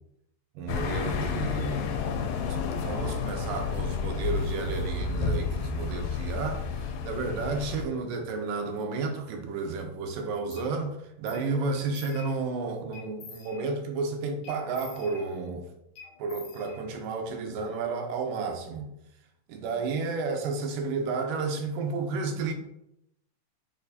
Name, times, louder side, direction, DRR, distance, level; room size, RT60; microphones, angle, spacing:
voice 1, 0.6-2.0 2.5-15.7 16.2-18.9 19.5-22.5, right 4 dB, 85° right, 2.2 m, -32 dB
sound 1, 0.7-7.8, left 5 dB, 90° left, 2.1 m, -30 dB
sound 2, 10.5-10.7 11.3-11.5 11.7-12.5 12.9-13.9 14.4-15.6 16.0-17.2, left 6 dB, 65° left, 1.9 m, -48 dB
6.6 x 2.5 x 2.7 m
omnidirectional pair, 3.7 m